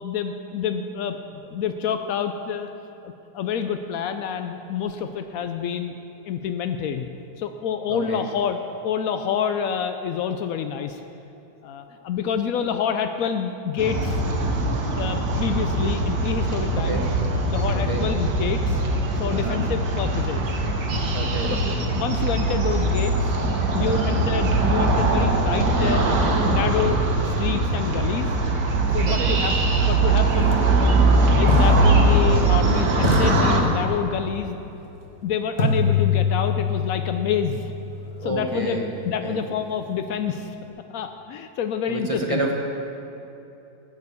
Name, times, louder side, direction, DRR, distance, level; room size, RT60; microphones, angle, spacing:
voice 1, 0.0-2.7 3.0-5.9 6.3-7.1 7.4-11.0 11.6-14.2 15.0-17.0 17.5-18.8 19.2-20.5 21.6-23.1 23.7-26.1 26.4-28.3 28.9-29.5 29.9-30.6 31.3-34.6 35.2-37.6 38.2-38.8 39.0-40.6 40.9-42.5, left 7 dB, 85° left, 7 dB, 0.7 m, -27 dB
voice 2, 7.9-8.2 16.7-17.1 17.7-18.1 19.3-19.6 21.1-21.6 23.8-24.1 29.1-29.4 38.2-38.9 39.2-39.4 41.9-42.6, right 2 dB, 35° right, -1 dB, 0.5 m, -29 dB
sound 1, 13.8-33.6, right 2 dB, 65° right, 1.7 m, -21 dB
sound 2, 30.4-30.5 31.5-32.6 33.0-34.3 35.6-39.5, left 4 dB, 35° left, 1.2 m, -26 dB
14.5 x 4.9 x 8.2 m, 2.9 s
omnidirectional pair, 2.0 m